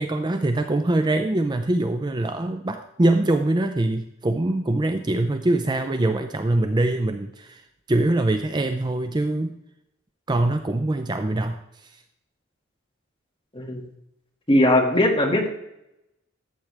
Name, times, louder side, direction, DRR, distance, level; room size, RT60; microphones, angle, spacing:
voice 1, 0.0-9.6 10.3-12.0, right 2 dB, 20° right, 7 dB, 0.5 m, -23 dB
voice 2, 13.5-13.8 14.5-15.5, left 1 dB, 25° left, -1 dB, 2.0 m, -19 dB
13.5 x 7.6 x 3.4 m, 0.84 s
head